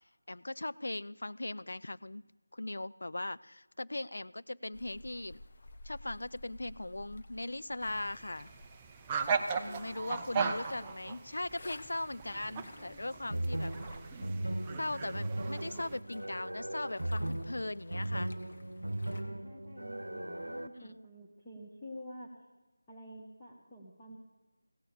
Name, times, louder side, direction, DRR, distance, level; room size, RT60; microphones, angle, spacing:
voice 1, 0.3-2.2 2.5-5.4 5.8-8.5 9.6-13.8 14.8-18.3 20.7-21.0, left 2 dB, 60° left, 17 dB, 0.3 m, -39 dB
sound 1, 4.7-19.2, left 2 dB, 35° left, 0.8 m, -55 dB
sound 2, 7.8-16.0, right 5 dB, 15° right, 0.4 m, -38 dB
voice 2, 9.2-10.1 12.1-12.3 12.8-13.9 18.7-22.3 22.9-24.2, equal, 15° left, -6 dB, 1.1 m, -50 dB
sound 3, 13.3-20.7, right 1 dB, 75° right, 0.8 m, -37 dB
16.0 x 6.8 x 7.5 m, 1.1 s
figure-of-eight pair, 165°, 0 cm